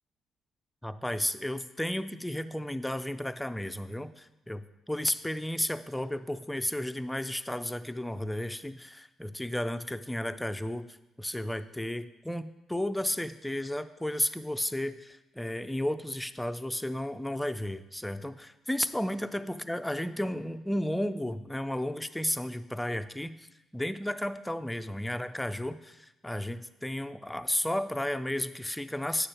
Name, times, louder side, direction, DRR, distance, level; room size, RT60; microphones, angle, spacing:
voice 1, 0.8-23.5 23.7-29.3, left 1 dB, 5° left, 10 dB, 0.3 m, -33 dB
9.0 x 6.7 x 2.9 m, 0.97 s
cardioid pair, 90°, 0 cm